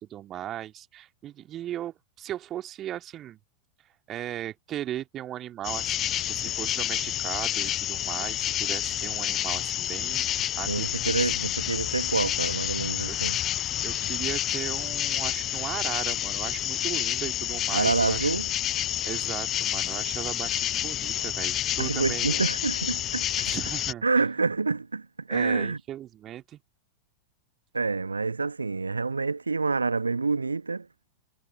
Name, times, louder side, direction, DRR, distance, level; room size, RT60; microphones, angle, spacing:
voice 1, 0.0-3.4 4.1-11.4 13.1-13.2 13.8-18.3 19.0-22.4 23.4-24.0 25.3-26.6, right 12 dB, 30° right, 2.2 m, -37 dB
sound 1, 5.6-23.9, left 12 dB, 30° left, 0.7 m, -29 dB
voice 2, 10.7-13.4 17.7-18.5 21.8-23.5 24.0-25.8 27.7-30.9, right 4 dB, 80° right, 1.1 m, -27 dB
figure-of-eight pair, 90°, 0 cm